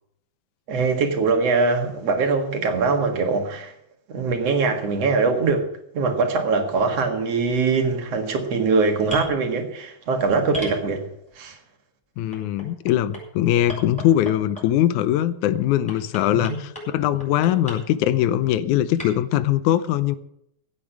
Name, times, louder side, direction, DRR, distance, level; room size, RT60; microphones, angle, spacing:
voice 1, 0.7-3.7 4.1-5.7 5.9-11.1 11.4-11.6 16.3-16.6, right 4 dB, 60° right, 2.8 m, -22 dB
sound 1, 9.1-9.3 10.5-11.3 12.3-13.2 13.7-14.8 15.9-16.9 17.2-17.8 19.0-19.1, right 1 dB, ahead, 5.5 m, -34 dB
voice 2, 12.2-20.2, left 12 dB, 85° left, 2.1 m, -21 dB
16.0 x 8.8 x 6.0 m
omnidirectional pair, 3.4 m